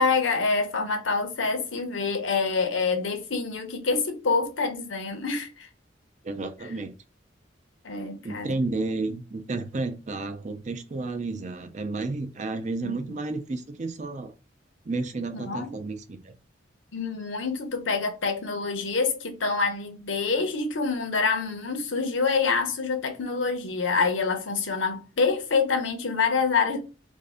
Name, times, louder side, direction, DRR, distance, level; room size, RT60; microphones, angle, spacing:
voice 1, 0.0-5.7 7.8-8.5 12.8-12.9 15.3-15.7 16.9-26.8, left 4 dB, 85° left, 0.8 m, -26 dB
voice 2, 6.2-6.9 8.2-14.3 14.9-16.3, right 3 dB, 40° right, 0.5 m, -31 dB
2.6 x 2.5 x 3.4 m
head